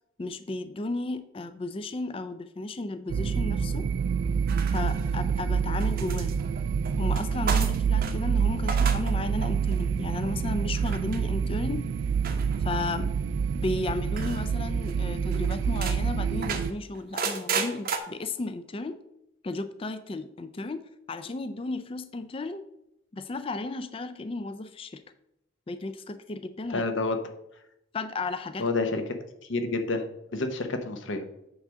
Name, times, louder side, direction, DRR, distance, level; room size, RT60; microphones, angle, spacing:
voice 1, 0.2-3.9 4.7-6.4 7.0-11.9 12.6-13.1 13.5-19.0 19.4-22.6 23.1-25.0 25.7-26.8 27.9-28.7, left 2 dB, 25° left, 10 dB, 0.3 m, -34 dB
sound 1, 3.1-16.7, right 6 dB, 60° right, 0.3 m, -27 dB
sound 2, 4.5-5.4 5.8-8.2 8.5-9.1 9.4-9.8 10.7-11.2 12.2-13.0 14.1-14.5 14.9-15.0 15.3-16.0 16.4-18.0, right 5 dB, 45° right, 0.8 m, -34 dB
voice 2, 26.7-27.2 28.6-29.0 29.5-30.1 30.3-31.2, left 3 dB, 70° left, 6 dB, 0.9 m, -28 dB
8.1 x 3.5 x 6.2 m, 0.84 s
head